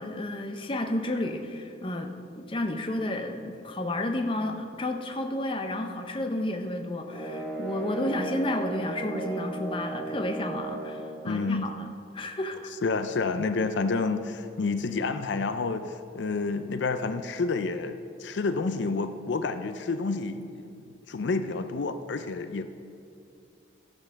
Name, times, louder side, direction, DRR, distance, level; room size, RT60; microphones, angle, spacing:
voice 1, 0.0-2.1 2.4-11.9 12.1-12.7, left 1 dB, 25° left, 5 dB, 0.6 m, -31 dB
sound 1, 7.0-11.3, right 2 dB, 5° right, 2.6 m, -35 dB
voice 2, 11.3-11.7 12.8-22.7, left 4 dB, 70° left, 10 dB, 0.4 m, -29 dB
13.5 x 5.4 x 6.4 m, 2.5 s
head